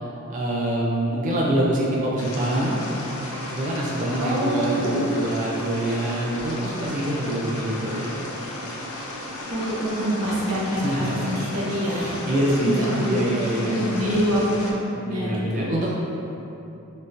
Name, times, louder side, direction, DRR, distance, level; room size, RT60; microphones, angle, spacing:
voice 1, 0.0-2.9 3.5-8.0 10.8-11.3 11.9-13.8 15.0-15.9, right 1 dB, 35° right, -4 dB, 0.3 m, -25 dB
sound 1, 2.2-14.7, left 1 dB, 75° left, 0.5 m, -34 dB
voice 2, 4.2-5.1 9.5-13.2 13.7-14.4 14.7-15.7, equal, 80° right, -6 dB, 0.7 m, -26 dB
3.5 x 2.7 x 2.5 m, 2.9 s
head